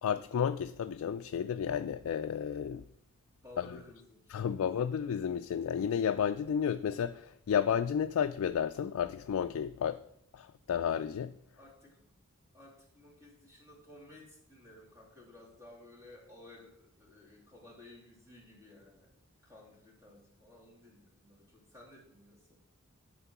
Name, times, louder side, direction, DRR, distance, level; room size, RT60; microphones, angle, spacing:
voice 1, 0.0-2.8 3.6-3.7 4.3-10.0 10.3-11.3, left 8 dB, 70° left, 0.3 m, -32 dB
voice 2, 3.4-4.7 11.6-12.2 12.5-19.1 19.4-22.6, left 2 dB, 15° right, 2.5 m, -56 dB
10.5 x 3.7 x 5.9 m
head